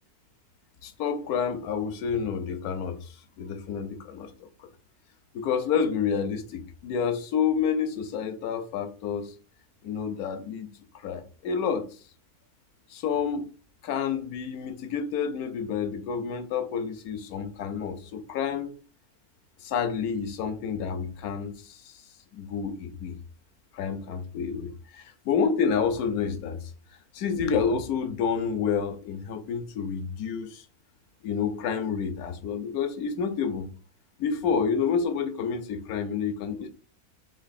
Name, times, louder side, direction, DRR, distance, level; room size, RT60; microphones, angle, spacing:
voice 1, 0.8-3.1 3.4-4.5 5.3-9.3 9.8-10.7 10.9-11.9 12.9-13.5 13.8-18.7 19.6-21.9 22.3-23.2 23.7-26.7 27.1-30.6 31.2-33.7 34.2-36.7, left 6 dB, 75° left, 1.1 m, -29 dB
3.7 x 3.0 x 4.0 m
omnidirectional pair, 1.6 m